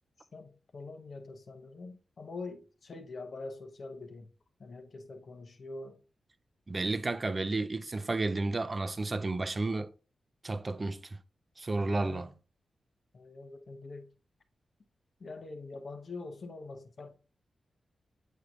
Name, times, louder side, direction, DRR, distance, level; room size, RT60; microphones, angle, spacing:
voice 1, 0.3-4.3 4.6-6.0 11.8-12.3 13.1-14.1 15.2-17.2, left 3 dB, 55° left, 0.9 m, -44 dB
voice 2, 6.7-9.9 10.4-11.0 11.6-12.3, right 2 dB, 30° right, 0.5 m, -32 dB
8.3 x 4.5 x 2.5 m
wide cardioid pair, 110°, 0 cm